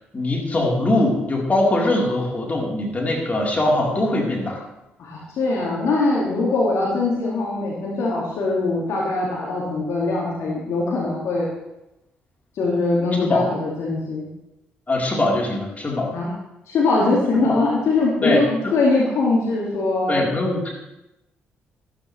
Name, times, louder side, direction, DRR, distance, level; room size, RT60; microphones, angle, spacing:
voice 1, 0.1-4.6 13.2-13.4 14.9-16.1 17.4-17.6 18.2-18.4 20.1-20.7, left 1 dB, 25° left, -2 dB, 4.1 m, -22 dB
voice 2, 5.0-11.5 12.5-14.3 16.1-16.3 16.7-20.3, left 3 dB, 60° left, -4 dB, 2.4 m, -22 dB
13.0 x 13.0 x 3.4 m, 0.90 s
figure-of-eight pair, 40°, 6 cm